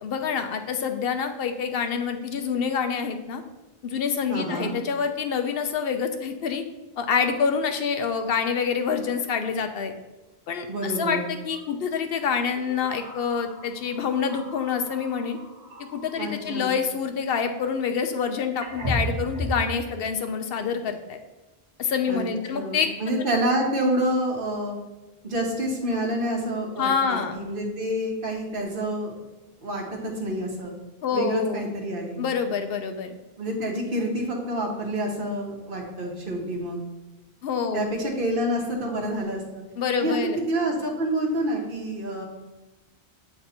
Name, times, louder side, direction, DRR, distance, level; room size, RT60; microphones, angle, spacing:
voice 1, 0.0-3.4 3.8-6.6 7.0-9.9 10.5-15.4 15.9-21.2 21.8-22.9 26.8-27.3 31.0-31.7 32.2-33.1 37.4-37.9 39.8-40.4, left 6 dB, 70° left, 7 dB, 0.8 m, -27 dB
voice 2, 4.3-4.7 10.7-11.2 16.2-16.8 22.1-24.8 25.2-29.2 29.6-30.7 31.1-32.2 33.4-36.8 37.7-39.6 40.0-42.2, right 1 dB, 60° right, 0 dB, 1.3 m, -28 dB
sound 1, 9.0-9.1 9.5-9.7 11.5-11.7 12.5-16.8 18.0-18.1 18.6-19.7, right 1 dB, 45° right, 1.1 m, -35 dB
7.9 x 3.4 x 4.2 m, 1.1 s
omnidirectional pair, 1.0 m